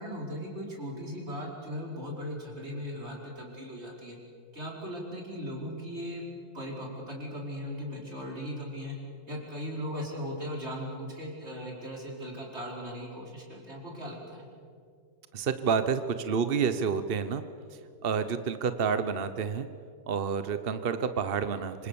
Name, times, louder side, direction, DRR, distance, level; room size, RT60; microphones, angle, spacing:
voice 1, 0.0-4.2 4.5-6.2 6.5-8.9 9.3-14.4, equal, 30° right, -1 dB, 5.2 m, -38 dB
voice 2, 15.3-17.4 18.0-19.7 20.1-21.9, right 6 dB, 50° right, 10 dB, 0.7 m, -29 dB
26.5 x 26.0 x 7.0 m, 2.3 s
omnidirectional pair, 2.1 m